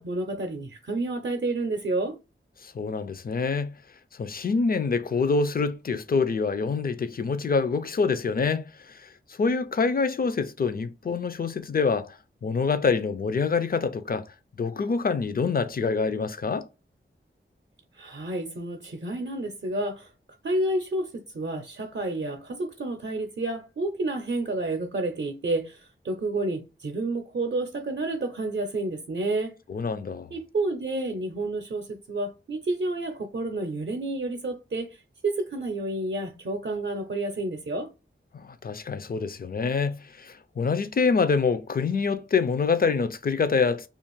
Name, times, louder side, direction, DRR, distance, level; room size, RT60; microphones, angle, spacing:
voice 1, 0.0-2.2 17.9-20.1 20.4-29.5 30.3-37.9, right 2 dB, 55° right, 0.6 m, -30 dB
voice 2, 2.6-3.7 4.2-14.3 14.6-16.7 29.7-30.3 38.3-43.9, left 4 dB, 45° left, 0.4 m, -26 dB
2.5 x 2.4 x 3.0 m
wide cardioid pair, 75°, 21 cm